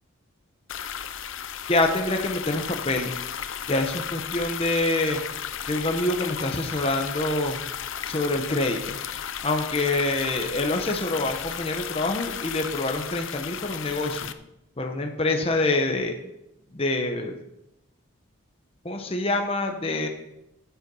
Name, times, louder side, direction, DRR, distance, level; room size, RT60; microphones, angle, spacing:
sound 1, 0.7-14.3, left 9 dB, 70° left, 0.6 m, -34 dB
voice 1, 1.7-3.1 3.7-5.2 5.7-7.6 8.1-9.0 9.4-14.3 14.8-16.1 16.7-17.4 18.8-20.1, left 2 dB, 30° left, 4 dB, 0.9 m, -26 dB
10.0 x 8.4 x 5.4 m, 0.86 s
head